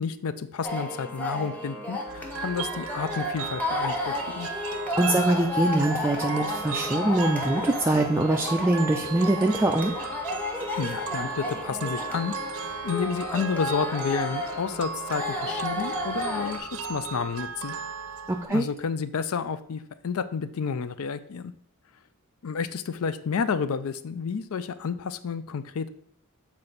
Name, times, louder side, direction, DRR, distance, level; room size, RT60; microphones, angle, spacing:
voice 1, 0.0-4.5 10.7-17.7 18.5-21.5 22.4-25.9, left 6 dB, 70° left, 13 dB, 0.4 m, -30 dB
sound 1, 0.6-16.6, left 1 dB, 5° left, 0.8 m, -33 dB
sound 2, 2.1-18.5, right 5 dB, 70° right, 0.6 m, -36 dB
sound 3, 2.9-8.7, left 4 dB, 25° left, 1.1 m, -48 dB
voice 2, 5.0-9.9 18.3-18.7, right 1 dB, 10° right, 2 dB, 0.3 m, -23 dB
7.5 x 4.4 x 3.9 m, 0.67 s
head